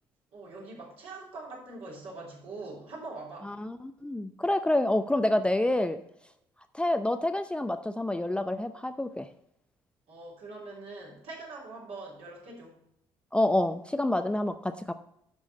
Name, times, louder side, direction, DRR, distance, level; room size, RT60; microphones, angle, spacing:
voice 1, 0.3-3.5 10.1-12.8, right 3 dB, 60° right, -3 dB, 3.4 m, -43 dB
voice 2, 3.6-6.0 6.7-9.3 13.3-14.9, left 1 dB, 10° left, 9 dB, 0.6 m, -27 dB
10.5 x 6.2 x 4.1 m, 0.77 s
figure-of-eight pair, 45°, 11 cm